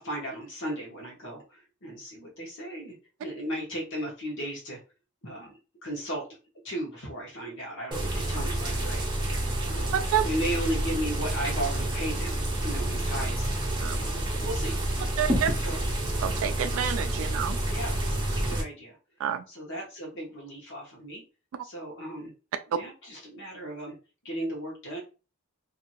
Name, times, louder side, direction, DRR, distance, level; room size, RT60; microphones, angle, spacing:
voice 1, 0.0-2.9 3.2-4.8 5.2-6.3 6.6-9.1 9.6-13.5 14.0-15.0 15.6-15.9 17.7-19.0 19.5-21.2 21.6-22.3 22.7-23.9 24.2-25.0, right 1 dB, 65° left, 1.1 m, -36 dB
sound 1, 7.9-18.6, right 1 dB, 20° right, 0.8 m, -29 dB
voice 2, 9.9-10.2 13.8-14.0 15.2-15.5 16.2-17.6 19.2-19.4, right 9 dB, 70° right, 0.3 m, -28 dB
2.8 x 2.7 x 2.6 m
head